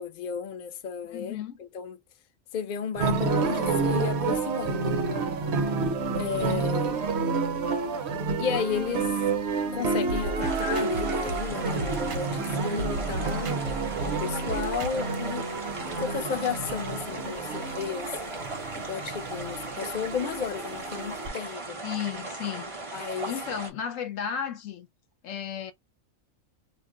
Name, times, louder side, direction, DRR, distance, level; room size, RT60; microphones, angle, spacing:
voice 1, 0.0-2.0 2.5-5.0 6.1-7.1 8.4-9.4 9.7-13.6 14.1-15.5 16.0-18.4 18.7-21.8 22.9-23.3, left 7 dB, 55° left, 0.6 m, -33 dB
voice 2, 1.1-1.6 21.8-22.7 23.3-24.9 25.2-25.7, left 8 dB, 70° left, 0.9 m, -33 dB
sound 1, 2.9-21.3, right 4 dB, 60° right, 0.9 m, -29 dB
sound 2, 10.1-12.5 12.8-15.2, right 3 dB, 75° right, 1.0 m, -35 dB
sound 3, 10.4-23.7, right 2 dB, 30° right, 0.6 m, -38 dB
2.4 x 2.1 x 3.7 m
omnidirectional pair, 1.4 m